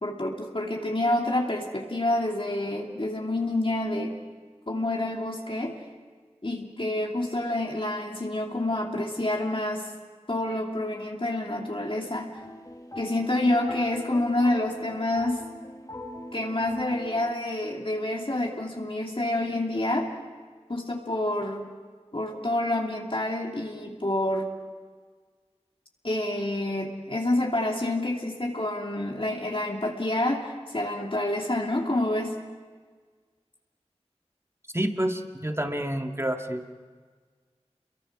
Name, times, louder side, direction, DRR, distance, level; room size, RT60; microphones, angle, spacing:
voice 1, 0.0-4.1 4.7-5.8 6.4-9.9 10.3-12.3 13.0-15.4 16.3-20.1 20.7-21.7 22.1-24.5 26.0-32.4, left 1 dB, 50° left, 0 dB, 2.8 m, -28 dB
sound 1, 12.3-17.3, left 1 dB, 30° left, 1.5 m, -42 dB
voice 2, 34.7-36.6, right 1 dB, 20° right, 4 dB, 1.9 m, -28 dB
29.0 x 23.0 x 6.2 m, 1.5 s
wide cardioid pair, 45°, 11 cm